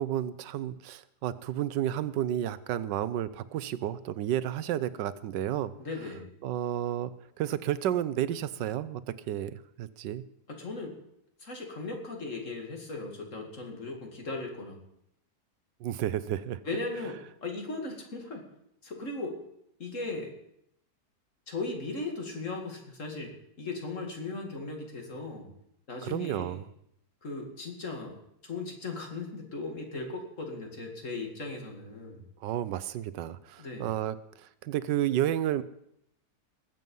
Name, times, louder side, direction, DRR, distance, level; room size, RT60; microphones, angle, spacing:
voice 1, 0.0-5.7 6.4-9.0 9.3-10.2 15.8-16.6 26.0-26.6 32.4-35.6, right 11 dB, 85° right, 16 dB, 1.3 m, -31 dB
voice 2, 5.8-6.3 10.5-11.0 11.4-14.8 16.6-18.4 18.8-19.4 19.8-20.3 21.5-25.5 25.9-26.6 27.2-32.3 33.6-33.9, left 3 dB, 45° left, 2 dB, 2.5 m, -37 dB
20.0 x 7.7 x 5.4 m, 0.75 s
omnidirectional pair, 1.8 m